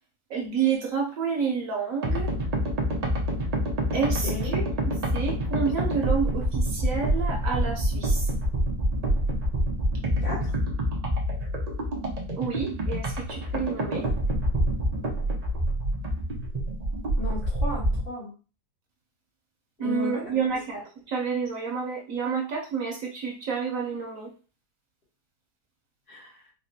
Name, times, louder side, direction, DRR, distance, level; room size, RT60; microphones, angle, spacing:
voice 1, 0.3-2.3 3.9-4.7 5.1-8.3 12.4-14.1 19.8-24.3, right 5 dB, 65° right, 0 dB, 0.9 m, -29 dB
sound 1, 2.0-18.0, right 1 dB, 80° right, 0.3 m, -27 dB
voice 2, 4.2-4.6 10.2-10.6 17.2-18.3 19.8-20.4 26.1-26.4, left 1 dB, 65° left, -7 dB, 2.3 m, -35 dB
4.2 x 2.2 x 2.7 m, 0.35 s
omnidirectional pair, 1.7 m